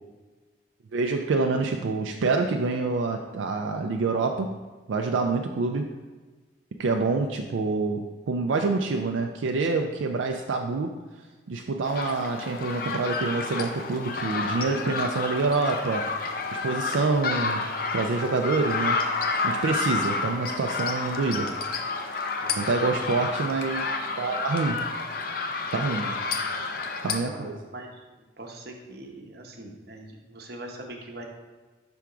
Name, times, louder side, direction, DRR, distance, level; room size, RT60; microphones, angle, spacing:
voice 1, 0.9-4.5 4.9-5.9 6.8-10.9 11.5-17.6 17.9-19.0 19.4-21.5 22.6-24.9 25.7-26.2 27.0-27.6, right 3 dB, 80° right, 3 dB, 0.4 m, -27 dB
sound 1, 11.8-27.2, left 4 dB, 50° left, 0.5 m, -30 dB
voice 2, 22.4-23.3 26.0-26.5 27.2-28.0 28.4-31.3, right 1 dB, 55° right, 2 dB, 0.8 m, -42 dB
5.8 x 3.5 x 4.8 m, 1.3 s
head